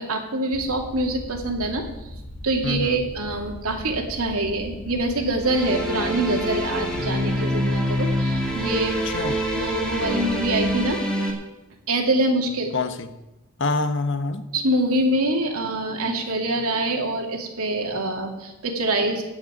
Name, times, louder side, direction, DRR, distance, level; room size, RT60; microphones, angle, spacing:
voice 1, 0.0-1.8 2.4-9.0 9.6-11.0 11.9-12.7 14.5-19.2, right 1 dB, 85° right, 2 dB, 2.4 m, -25 dB
sound 1, 0.5-11.0, left 1 dB, 75° left, 2.2 m, -39 dB
voice 2, 2.6-3.0 9.0-9.4 12.5-13.1 13.6-14.4, left 3 dB, 55° left, 10 dB, 1.0 m, -26 dB
sound 2, 5.4-11.3, equal, 5° left, 2.2 m, -26 dB
16.0 x 5.5 x 9.9 m, 0.99 s
head